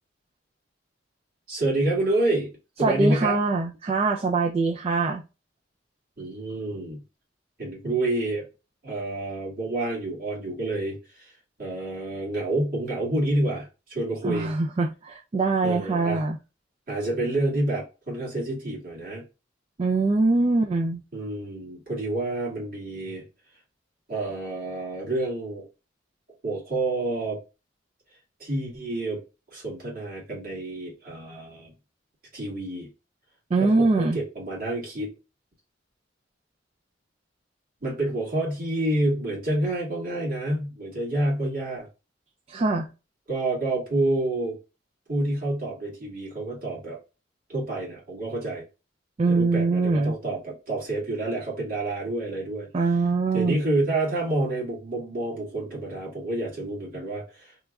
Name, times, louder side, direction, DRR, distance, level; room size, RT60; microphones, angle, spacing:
voice 1, 1.5-2.5 2.8-3.4 6.2-7.0 7.6-8.4 8.8-11.3 11.6-14.5 15.6-16.2 16.9-19.2 21.1-23.2 24.1-25.7 26.4-27.4 28.4-29.2 29.5-31.7 32.3-32.9 33.6-35.1 37.8-41.9 43.3-44.6 45.1-47.0 47.5-48.7 49.3-52.7 53.3-57.5, right 2 dB, 50° right, 1.7 m, -28 dB
voice 2, 2.8-5.2 14.2-16.4 19.8-21.0 33.5-34.2 42.5-42.9 49.2-50.1 52.7-53.6, right 3 dB, 30° right, 0.4 m, -23 dB
3.1 x 2.3 x 3.5 m
head